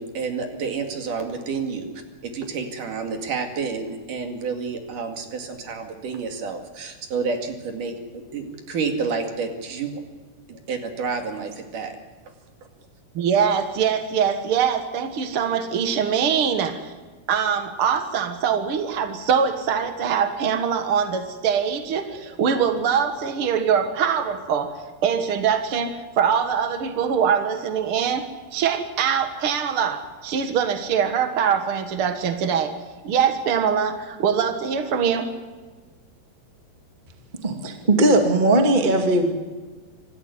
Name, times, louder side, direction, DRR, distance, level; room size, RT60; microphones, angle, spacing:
voice 1, 0.0-1.9 2.2-10.0 10.5-11.9, right 5 dB, 55° right, 5 dB, 3.5 m, -29 dB
voice 2, 13.1-16.9 17.3-32.8 33.0-35.3, right 7 dB, 85° right, 8 dB, 1.2 m, -23 dB
voice 3, 37.4-39.3, right 1 dB, 20° right, 4 dB, 1.3 m, -18 dB
26.0 x 14.0 x 9.6 m, 1.4 s
omnidirectional pair, 4.9 m